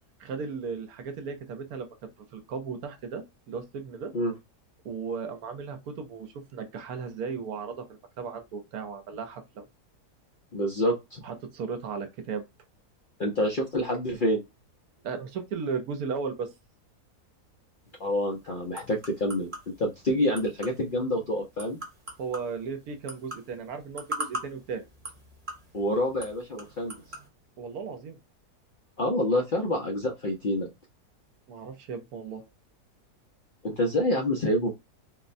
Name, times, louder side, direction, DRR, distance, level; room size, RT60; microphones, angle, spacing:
voice 1, 0.2-1.9 2.3-4.1 4.8-7.9 8.2-9.7 11.2-12.4 15.0-16.5 22.2-24.8 27.6-28.2 31.5-32.4, right 5 dB, 75° right, 1.1 m, -35 dB
voice 2, 10.5-11.2 13.2-14.4 18.0-19.5 19.8-21.8 25.7-27.0 29.0-30.7 33.6-34.7, left 1 dB, 60° left, 0.5 m, -27 dB
sound 1, 17.8-27.3, right 1 dB, 35° right, 1.0 m, -42 dB
3.8 x 2.1 x 2.5 m
omnidirectional pair, 1.7 m